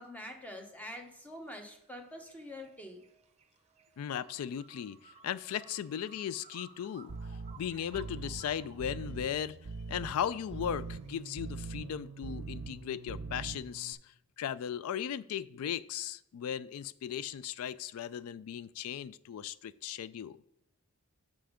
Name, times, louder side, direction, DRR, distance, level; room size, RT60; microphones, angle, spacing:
voice 1, 0.0-3.0, left 1 dB, 5° left, 0.9 m, -45 dB
sound 1, 0.8-11.6, right 4 dB, 30° right, 0.7 m, -59 dB
voice 2, 4.0-7.1 7.6-9.6 9.9-20.4, left 9 dB, 75° left, 0.3 m, -37 dB
sound 2, 7.1-13.9, right 4 dB, 60° right, 0.6 m, -43 dB
6.2 x 5.7 x 4.9 m
head